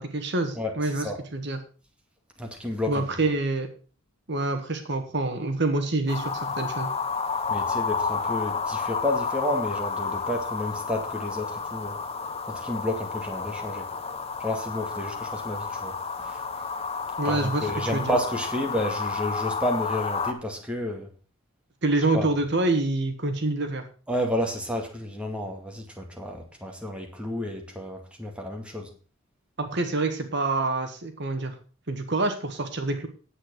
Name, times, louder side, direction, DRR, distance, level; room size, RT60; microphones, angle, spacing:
voice 1, 0.0-1.1 1.3-1.6 2.9-3.7 4.3-6.9 17.2-18.1 21.8-23.8 29.6-31.5 31.9-33.1, right 2 dB, 55° right, 7 dB, 1.5 m, -26 dB
voice 2, 0.6-1.2 2.4-3.0 7.5-12.0 12.5-13.9 14.4-16.4 17.2-21.1 22.1-22.3 24.1-28.9, left 1 dB, 5° right, 1 dB, 2.2 m, -31 dB
sound 1, 6.1-20.3, left 5 dB, 30° left, 1.0 m, -31 dB
9.9 x 8.1 x 6.3 m, 0.39 s
head